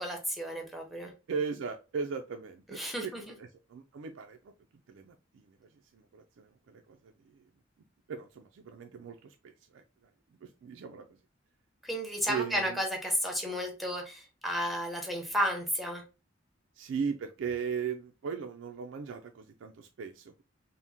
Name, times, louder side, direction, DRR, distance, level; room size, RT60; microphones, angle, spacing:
voice 1, 0.0-1.1 2.7-3.3 11.8-16.0, equal, ahead, 1 dB, 0.7 m, -32 dB
voice 2, 1.3-3.1 3.4-4.5 4.9-5.6 5.9-7.4 8.1-9.8 10.4-11.2 12.3-12.8 16.8-20.4, right 6 dB, 85° right, 5 dB, 0.3 m, -38 dB
3.5 x 2.0 x 2.7 m, 0.31 s
head